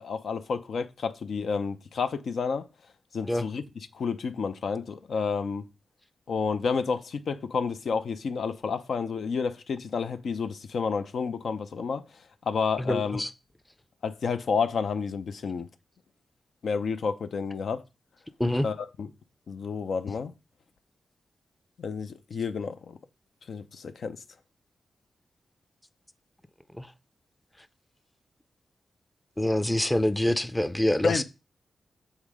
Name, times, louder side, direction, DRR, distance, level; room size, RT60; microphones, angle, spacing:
voice 1, 0.0-2.7 3.1-3.6 3.9-5.6 6.3-12.0 12.5-13.2 14.0-15.7 16.6-17.8 18.6-19.1 19.5-20.3 21.8-23.0 23.5-24.2 31.0-31.2, left 5 dB, 70° left, 0.5 m, -30 dB
voice 2, 12.8-13.3 18.4-18.7 26.8-26.9 29.4-31.2, left 1 dB, 10° left, 0.5 m, -26 dB
7.2 x 3.6 x 4.9 m
wide cardioid pair, 95°, 0 cm